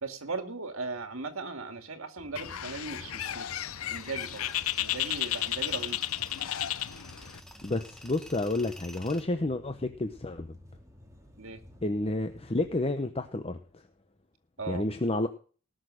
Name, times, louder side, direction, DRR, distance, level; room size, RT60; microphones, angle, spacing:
voice 1, 0.0-3.5 3.9-6.1 11.4-11.6 14.6-14.8, right 4 dB, 70° right, 8 dB, 2.1 m, -38 dB
sound 1, 2.2-12.9, equal, 15° right, 2.3 m, -55 dB
Bird, 2.4-7.4, left 12 dB, 70° left, 0.7 m, -33 dB
Tools, 3.9-9.2, equal, ahead, 1.5 m, -51 dB
voice 2, 7.6-10.6 11.8-13.6 14.7-15.3, left 2 dB, 25° left, 8 dB, 0.8 m, -30 dB
19.0 x 6.5 x 6.3 m, 0.40 s
head